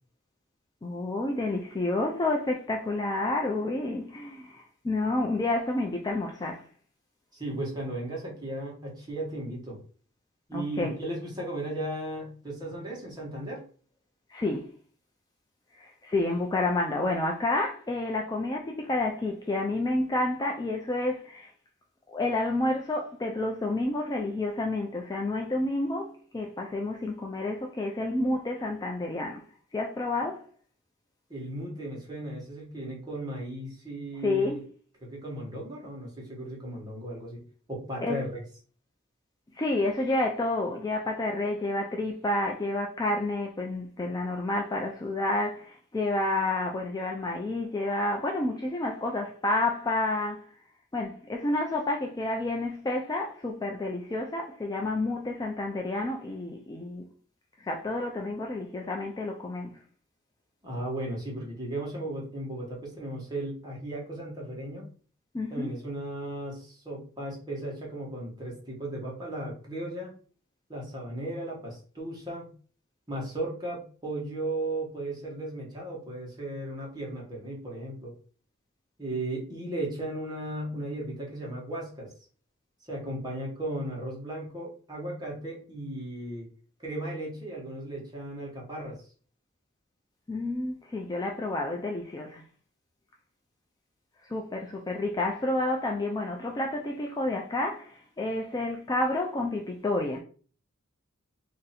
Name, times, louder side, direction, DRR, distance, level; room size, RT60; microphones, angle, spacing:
voice 1, 0.8-6.6 10.5-10.9 14.3-14.6 15.8-21.5 22.1-29.4 29.7-30.4 34.2-34.6 38.0-38.2 39.5-50.5 50.9-57.1 57.6-59.8 65.3-65.7 90.3-92.4 94.2-100.2, left 2 dB, 20° left, 0.3 m, -29 dB
voice 2, 7.3-9.8 10.5-13.6 31.3-34.6 35.0-38.4 60.6-64.9 65.5-70.1 70.7-72.5 73.1-78.1 79.0-82.1 82.9-86.5 86.8-89.0, right 1 dB, 20° right, 1.3 m, -36 dB
2.7 x 2.6 x 4.0 m
head